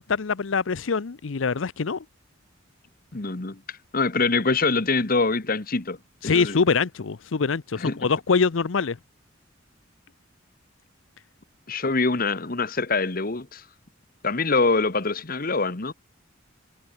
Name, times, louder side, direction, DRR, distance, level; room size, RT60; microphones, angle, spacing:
voice 1, 0.0-2.0 6.2-9.0, left 5 dB, 80° left, 0.7 m, -24 dB
voice 2, 3.1-6.0 6.2-6.6 7.8-8.1 11.7-13.6 14.2-15.9, left 3 dB, 45° left, 1.3 m, -24 dB
head